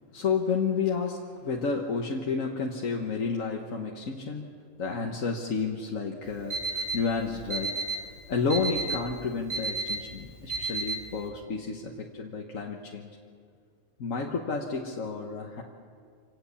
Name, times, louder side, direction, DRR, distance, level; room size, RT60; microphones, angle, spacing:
voice 1, 0.1-13.2 14.0-15.6, left 5 dB, 85° left, 0 dB, 1.7 m, -31 dB
Alarm, 6.3-11.3, right 3 dB, 90° right, 3.2 m, -33 dB
26.5 x 18.0 x 7.1 m, 2.1 s
omnidirectional pair, 1.3 m